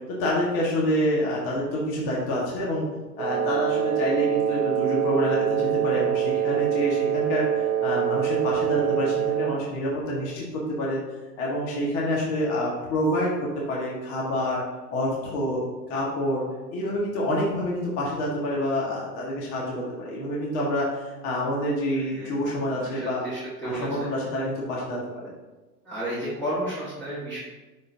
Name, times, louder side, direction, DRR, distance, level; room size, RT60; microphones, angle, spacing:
voice 1, 0.1-2.9 3.2-11.0 11.4-14.6 14.9-15.6 15.9-16.4 16.7-23.2 23.6-25.3, equal, 30° left, -4 dB, 1.4 m, -27 dB
Wind instrument woodwind instrument, 3.2-9.6, right 9 dB, 85° right, 1.2 m, -25 dB
voice 2, 22.0-24.1 25.8-27.4, right 1 dB, 5° left, -11 dB, 1.4 m, -33 dB
10.5 x 3.9 x 2.6 m, 1.2 s
hypercardioid pair, 135°, 50 cm